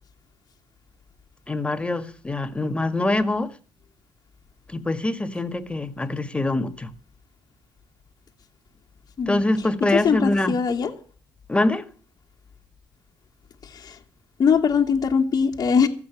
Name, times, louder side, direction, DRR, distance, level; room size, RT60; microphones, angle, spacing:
voice 1, 1.5-3.5 4.7-6.9 9.3-10.6 11.5-11.9, left 2 dB, 15° left, 1.9 m, -24 dB
voice 2, 9.9-10.9 13.6-14.0 14.4-15.9, left 6 dB, 50° left, 2.1 m, -21 dB
15.0 x 8.1 x 9.2 m
cardioid pair, 95°, 8 cm